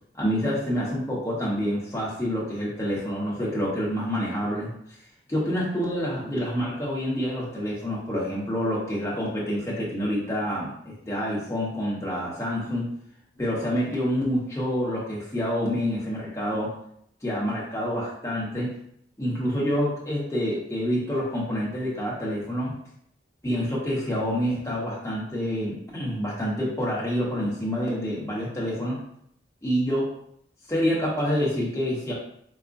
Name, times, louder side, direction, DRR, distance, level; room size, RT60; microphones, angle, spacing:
voice 1, 0.1-4.7 5.3-12.9 13.4-16.7 17.2-18.7 19.2-22.8 23.4-29.0 29.6-30.1 30.7-32.1, equal, 15° left, -5 dB, 0.9 m, -27 dB
4.7 x 2.1 x 2.5 m, 0.69 s
head